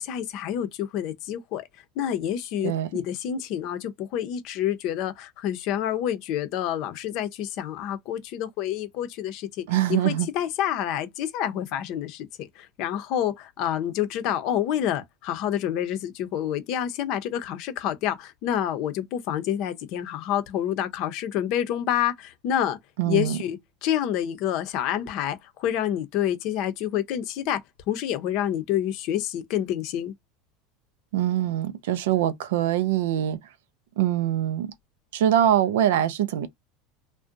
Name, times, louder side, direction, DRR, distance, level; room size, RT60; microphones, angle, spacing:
voice 1, 0.0-1.7 2.0-22.8 23.0-27.6 27.9-30.1, left 10 dB, 60° left, 0.6 m, -28 dB
voice 2, 9.7-10.3 23.0-23.4 31.1-33.4 34.0-34.7 35.1-36.5, right 11 dB, 80° right, 0.4 m, -23 dB
2.6 x 2.1 x 2.5 m
supercardioid pair, 100°, 0 cm